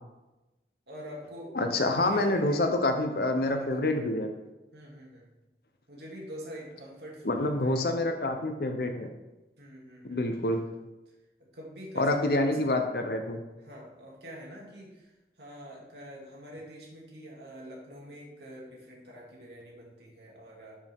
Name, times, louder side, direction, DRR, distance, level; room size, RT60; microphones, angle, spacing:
voice 1, 0.9-1.6 1.8-2.6 3.4-3.9 4.7-5.3 5.9-7.8 9.6-10.4 11.5-12.7 13.6-15.1 15.4-20.8, equal, 70° right, -3 dB, 2.4 m, -45 dB
voice 2, 1.5-4.3 7.2-9.1 10.0-10.6 12.0-13.4, left 2 dB, 55° left, 5 dB, 0.8 m, -27 dB
11.5 x 5.4 x 3.6 m, 1.0 s
head